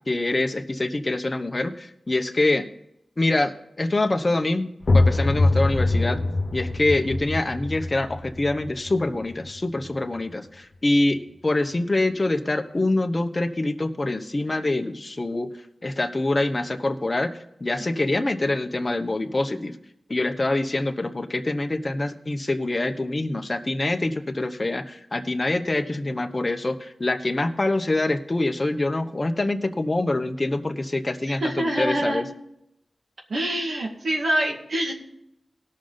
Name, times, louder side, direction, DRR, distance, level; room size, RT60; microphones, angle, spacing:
voice 1, 0.1-2.7 3.2-4.7 4.9-6.2 6.5-15.5 15.8-19.8 20.1-32.2, left 2 dB, 35° left, 6 dB, 1.0 m, -25 dB
sound 1, 4.8-10.4, left 2 dB, 60° left, 0.9 m, -24 dB
voice 2, 31.3-32.2 33.3-34.9, right 1 dB, 80° right, 0 dB, 2.1 m, -25 dB
18.5 x 6.5 x 4.0 m, 0.81 s
wide cardioid pair, 65°, 0 cm